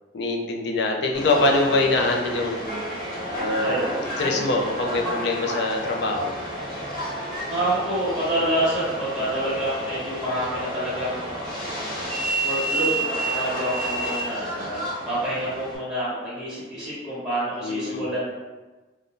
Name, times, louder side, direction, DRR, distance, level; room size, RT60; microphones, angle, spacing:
voice 1, 0.1-2.6 3.4-6.4 17.6-18.0, left 2 dB, 75° left, 1 dB, 0.5 m, -24 dB
Subway metro underground, 1.1-15.8, right 1 dB, 55° left, 1.0 m, -30 dB
voice 2, 3.6-4.0 7.5-11.7 12.4-18.2, right 1 dB, ahead, -11 dB, 1.0 m, -27 dB
2.6 x 2.2 x 3.5 m, 1.2 s
head